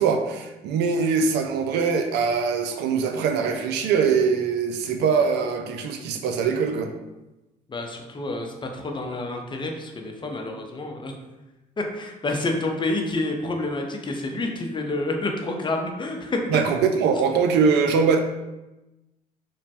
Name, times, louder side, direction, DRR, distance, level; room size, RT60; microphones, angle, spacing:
voice 1, 0.0-6.9 16.5-18.2, right 5 dB, 65° right, 5 dB, 0.4 m, -22 dB
voice 2, 7.7-11.1 11.8-16.6, left 2 dB, 25° left, 3 dB, 0.6 m, -28 dB
3.0 x 2.1 x 2.8 m, 1.0 s
hypercardioid pair, 60°, 19 cm